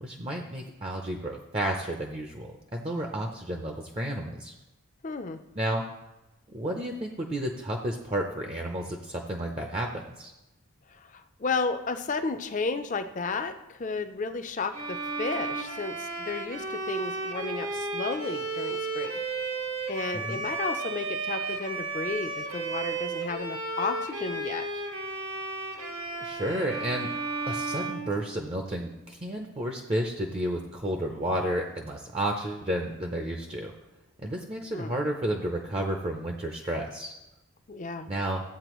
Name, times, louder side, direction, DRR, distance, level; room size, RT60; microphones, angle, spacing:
voice 1, 0.0-4.5 5.5-5.8 6.5-10.3 20.1-20.4 26.2-27.1 27.5-33.7 34.2-37.1 38.1-38.4, right 1 dB, 25° right, 2 dB, 0.6 m, -31 dB
voice 2, 5.0-5.4 10.9-19.1 19.4-19.6 19.9-24.7 34.7-35.0 37.7-38.1, left 4 dB, 35° left, 9 dB, 0.5 m, -33 dB
Bowed string instrument, 14.7-28.8, right 3 dB, 75° right, 1.8 m, -33 dB
14.5 x 8.4 x 3.1 m, 0.99 s
head